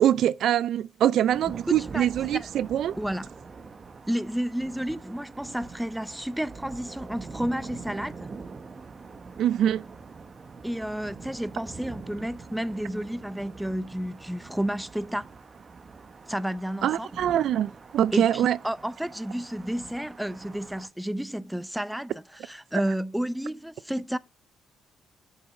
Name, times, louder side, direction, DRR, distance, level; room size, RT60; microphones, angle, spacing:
voice 1, 0.0-3.0 9.4-9.8 16.8-18.6, right 11 dB, 75° right, 0.4 m, -24 dB
sound 1, 1.3-20.9, right 4 dB, 40° right, 1.1 m, -44 dB
voice 2, 3.0-3.3 4.1-8.3 10.6-15.2 16.3-17.1 18.1-22.1 22.4-24.2, equal, 5° right, 0.5 m, -31 dB
8.0 x 6.5 x 4.1 m
cardioid pair, 90°, 0 cm